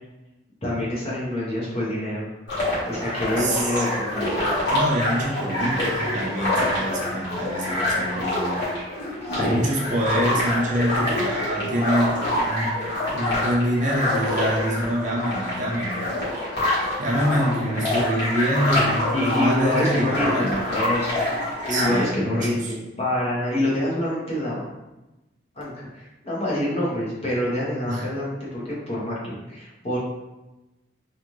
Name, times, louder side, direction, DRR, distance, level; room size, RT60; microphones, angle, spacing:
voice 1, 0.6-2.2 2.8-4.4 9.3-9.6 10.1-10.3 17.4-17.9 19.1-21.3 21.7-24.7 25.6-30.0, left 1 dB, 35° left, -6 dB, 0.9 m, -27 dB
sound 1, 2.5-22.1, left 1 dB, 65° left, 1.3 m, -26 dB
voice 2, 3.4-3.7 4.7-8.6 9.4-12.8 13.1-16.1 17.0-20.6 21.7-22.7 27.9-28.1, equal, 45° right, -3 dB, 0.5 m, -25 dB
2.5 x 2.5 x 3.0 m, 1.0 s
head